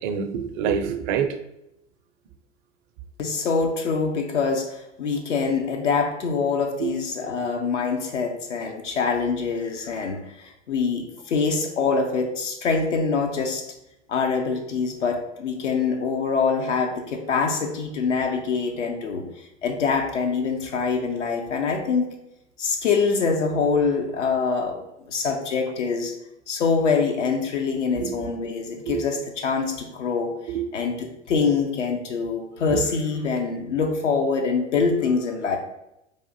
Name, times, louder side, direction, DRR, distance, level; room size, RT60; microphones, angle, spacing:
voice 1, 0.0-1.4 6.8-6.9 27.9-28.2 28.9-29.0 30.5-30.7 32.7-32.8, right 7 dB, 45° right, 8 dB, 0.4 m, -26 dB
voice 2, 3.2-13.6 14.1-19.2 19.6-22.1 22.6-24.8 25.1-26.1 26.5-30.3 30.7-35.6, left 5 dB, 80° left, 2 dB, 0.6 m, -24 dB
4.8 x 2.5 x 2.6 m, 0.85 s
figure-of-eight pair, 90°, 36 cm